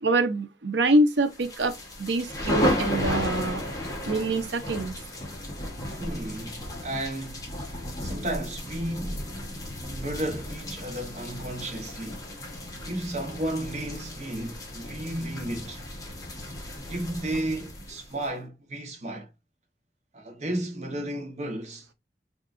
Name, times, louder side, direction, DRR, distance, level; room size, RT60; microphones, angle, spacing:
voice 1, 0.0-1.7 2.0-3.6 4.1-4.9, right 2 dB, 85° right, 0.7 m, -25 dB
sound 1, 1.3-18.3, left 1 dB, 20° left, 1.2 m, -34 dB
voice 2, 6.0-9.4 9.9-12.3 12.9-15.8 16.8-19.3 20.1-21.9, right 1 dB, 40° right, 1.1 m, -33 dB
3.9 x 3.5 x 2.5 m
head